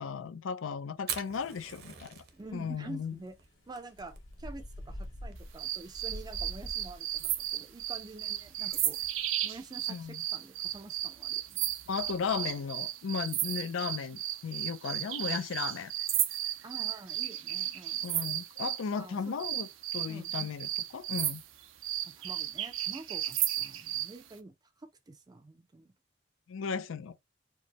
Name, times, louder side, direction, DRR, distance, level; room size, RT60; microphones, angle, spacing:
voice 1, 0.0-2.2 2.5-3.2 9.9-10.2 11.9-15.9 18.0-21.4 26.5-27.1, left 6 dB, 90° left, 0.4 m, -36 dB
Fire, 1.0-10.8, right 7 dB, 55° right, 0.8 m, -47 dB
sound 1, 1.5-10.0, left 1 dB, 75° left, 1.0 m, -47 dB
voice 2, 2.3-3.4 3.7-9.0 9.4-11.7 16.6-18.2 18.9-19.5 20.1-20.3 22.1-25.9, right 3 dB, 20° right, 0.4 m, -48 dB
sound 2, 5.6-18.8 19.4-24.1, right 12 dB, 80° right, 0.5 m, -34 dB
4.5 x 2.1 x 2.8 m
head